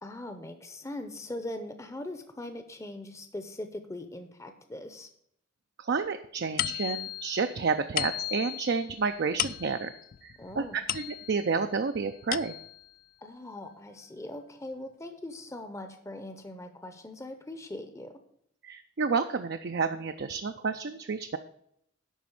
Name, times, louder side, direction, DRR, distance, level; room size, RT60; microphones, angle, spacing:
voice 1, 0.0-5.1 10.4-10.8 13.2-18.1, left 1 dB, 15° left, 8 dB, 0.7 m, -41 dB
voice 2, 5.8-9.9 10.2-12.5 18.6-21.4, right 5 dB, 55° right, 7 dB, 0.5 m, -30 dB
sound 1, 6.6-11.6 12.0-12.9, left 12 dB, 45° left, 0.3 m, -35 dB
11.0 x 4.2 x 7.0 m, 0.72 s
head